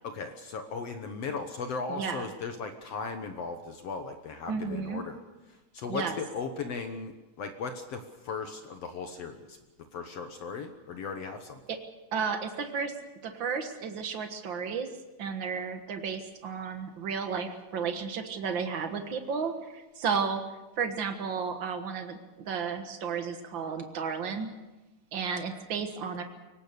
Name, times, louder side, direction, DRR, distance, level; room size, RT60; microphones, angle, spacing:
voice 1, 0.0-5.2 5.5-9.6 9.9-11.6, left 4 dB, 70° left, 7 dB, 1.5 m, -37 dB
voice 2, 1.9-2.3 4.5-5.1 5.9-6.1 11.7-11.8 12.1-12.9 13.2-14.9 15.2-20.4 20.8-24.5 25.1-26.2, right 6 dB, 60° right, 6 dB, 1.2 m, -33 dB
23.5 x 18.5 x 6.8 m, 1.1 s
omnidirectional pair, 4.4 m